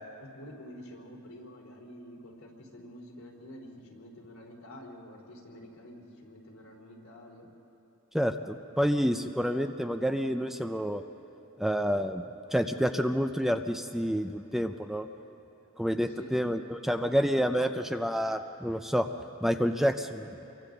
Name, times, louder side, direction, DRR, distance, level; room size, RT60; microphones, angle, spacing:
voice 1, 0.2-7.5 16.1-16.5, equal, 75° left, -2 dB, 3.8 m, -48 dB
voice 2, 8.1-11.0 11.6-12.2 12.5-15.1 15.8-19.1 19.4-20.3, equal, ahead, 7 dB, 0.5 m, -28 dB
28.5 x 23.5 x 4.0 m, 2.8 s
head